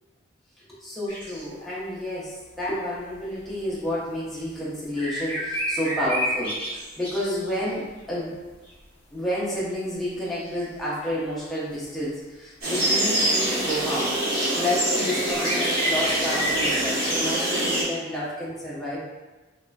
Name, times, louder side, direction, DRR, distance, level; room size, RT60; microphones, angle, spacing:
voice 1, 0.8-8.4 9.1-14.1 14.5-19.1, left 1 dB, ahead, -9 dB, 0.5 m, -30 dB
sound 1, 1.1-1.5 3.5-3.6 4.4-4.5 5.0-7.7 8.4-8.8 9.4-9.5 10.4-10.8 11.4-11.7 13.6-13.8 14.9-15.0 15.2-17.8, right 1 dB, 25° left, 1.0 m, -31 dB
sound 2, 12.6-17.8, right 1 dB, 50° right, 1.0 m, -25 dB
3.0 x 2.6 x 2.3 m, 1.2 s
head